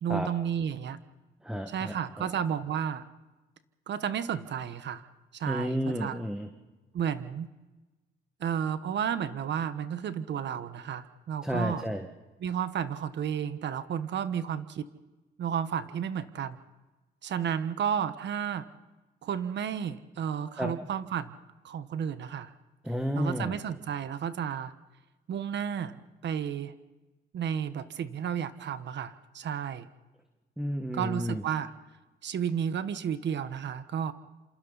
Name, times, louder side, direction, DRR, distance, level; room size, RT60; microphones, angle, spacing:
voice 1, 0.0-1.0 1.7-3.0 3.9-5.0 5.3-6.2 6.9-7.5 8.4-11.8 12.4-14.8 15.4-16.6 17.2-18.6 19.2-21.4 21.6-22.5 23.1-24.7 25.3-26.7 27.3-29.9 30.9-31.7 32.2-34.1, right 8 dB, 65° right, 12 dB, 1.3 m, -32 dB
voice 2, 1.4-2.3 5.4-6.5 11.4-12.0 20.6-20.7 22.8-23.6 30.6-31.4, equal, 5° right, 4 dB, 1.7 m, -31 dB
27.5 x 27.5 x 4.1 m, 1.2 s
cardioid pair, 90°, 20 cm